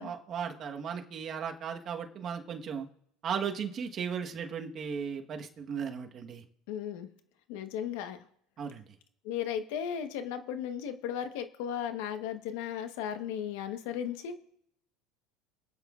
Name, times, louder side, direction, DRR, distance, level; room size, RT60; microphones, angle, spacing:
voice 1, 0.0-2.9 3.2-6.4 8.6-8.8, right 7 dB, 40° right, 3 dB, 1.3 m, -36 dB
voice 2, 6.7-7.1 7.5-8.2 9.2-14.4, left 9 dB, 80° left, 8 dB, 1.2 m, -35 dB
25.5 x 9.2 x 2.5 m, 0.71 s
cardioid pair, 135°, 0 cm